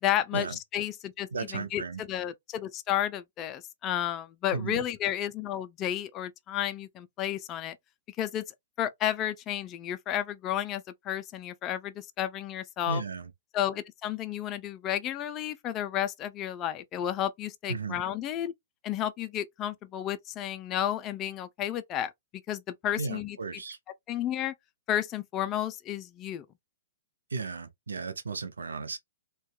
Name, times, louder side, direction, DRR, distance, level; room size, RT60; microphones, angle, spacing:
voice 1, 0.0-7.8 8.1-8.4 8.8-13.0 13.5-18.5 18.8-22.1 22.5-23.4 24.1-24.5 24.9-26.5, left 11 dB, 30° left, 0.4 m, -32 dB
voice 2, 1.3-2.0 4.5-4.8 12.9-13.3 17.7-18.0 23.0-23.8 27.3-29.0, right 4 dB, 85° right, 0.6 m, -35 dB
2.7 x 2.2 x 2.2 m
hypercardioid pair, 130°, 0 cm